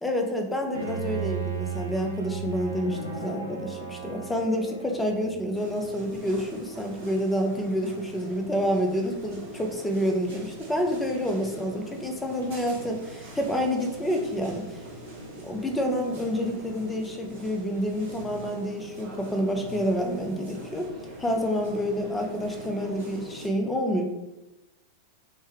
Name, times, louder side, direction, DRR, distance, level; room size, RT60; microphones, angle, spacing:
voice 1, 0.0-14.8 15.5-20.9 21.2-24.1, equal, 10° left, 3 dB, 0.5 m, -28 dB
Bowed string instrument, 0.7-5.5, right 6 dB, 80° right, 0.6 m, -34 dB
sound 1, 5.5-23.5, right 1 dB, 60° right, 1.0 m, -43 dB
3.2 x 2.1 x 3.4 m, 0.98 s
figure-of-eight pair, 90°, 0 cm